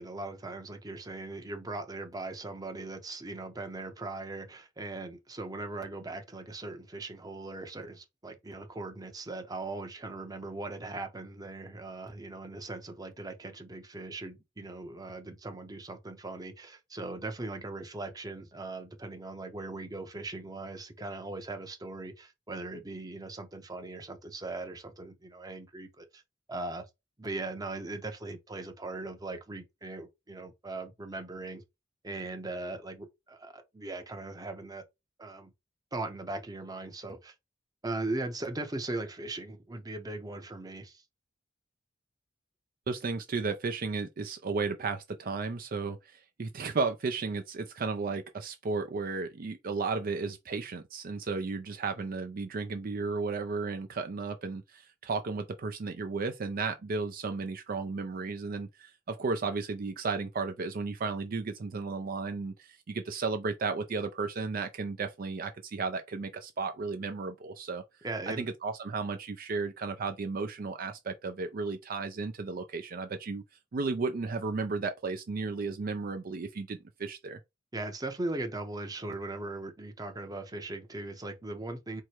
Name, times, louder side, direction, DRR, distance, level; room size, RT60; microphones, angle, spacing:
voice 1, 0.0-26.2 26.5-26.9 27.2-31.6 32.0-34.8 35.2-35.5 35.9-37.3 37.8-41.0 68.0-68.5 77.7-82.0, right 2 dB, 20° right, 0.7 m, -39 dB
voice 2, 42.9-67.8 68.3-73.4 73.7-77.4, right 4 dB, 50° right, 0.4 m, -34 dB
4.7 x 2.1 x 4.4 m
head